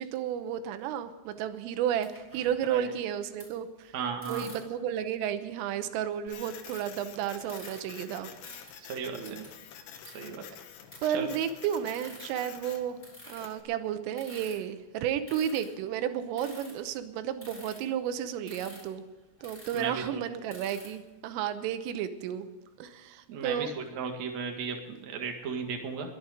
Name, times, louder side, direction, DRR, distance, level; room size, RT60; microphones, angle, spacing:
voice 1, 0.0-3.9 4.3-8.3 9.1-9.5 11.0-13.0 13.3-19.0 19.4-22.5 22.8-23.7, right 9 dB, 90° right, 10 dB, 3.5 m, -32 dB
sound 1, 2.0-2.8 3.4-3.5 4.2-4.8 5.6-5.7 6.1-7.1 7.4-7.8 8.4-8.7 9.2-9.5 10.0-10.1 10.5-10.6 10.9-11.0 11.4-11.5 11.9-12.3 13.0-13.4 14.1-14.6 15.2-15.8 16.4-16.9 17.4-17.8 18.4-18.9 19.4-19.9 20.5-21.1, left 1 dB, 10° left, 4.9 m, -49 dB
voice 2, 3.9-4.5 8.8-9.4 10.1-10.4 11.1-11.3 19.7-20.2 23.3-26.2, right 5 dB, 55° right, 3 dB, 2.0 m, -35 dB
Printer, 6.3-13.6, left 8 dB, 70° left, 3.0 m, -48 dB
22.0 x 9.1 x 5.2 m, 1.2 s
omnidirectional pair, 5.8 m